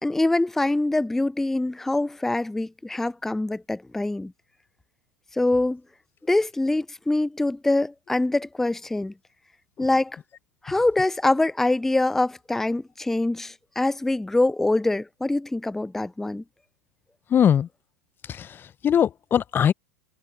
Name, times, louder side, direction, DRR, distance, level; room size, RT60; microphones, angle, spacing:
voice 1, 0.0-4.3 5.3-5.8 6.3-9.1 9.8-10.2 10.6-16.4, left 2 dB, 5° left, 0.4 m, -24 dB
voice 2, 17.3-17.7 18.3-19.7, left 9 dB, 25° left, 1.1 m, -21 dB
figure-of-eight pair, 90°, 9 cm